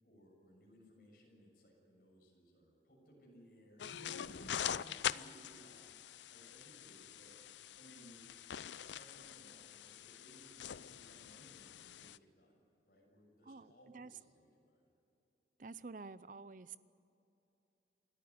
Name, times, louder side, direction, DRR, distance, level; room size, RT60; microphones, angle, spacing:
voice 1, 0.0-7.3 7.8-8.2 8.9-14.7, equal, 55° left, -1 dB, 6.8 m, -61 dB
sound 1, 3.8-12.2, left 9 dB, 85° left, 0.5 m, -44 dB
voice 2, 13.5-14.1 15.6-16.8, right 4 dB, 45° right, 16 dB, 0.6 m, -50 dB
28.0 x 13.5 x 9.7 m, 2.9 s
head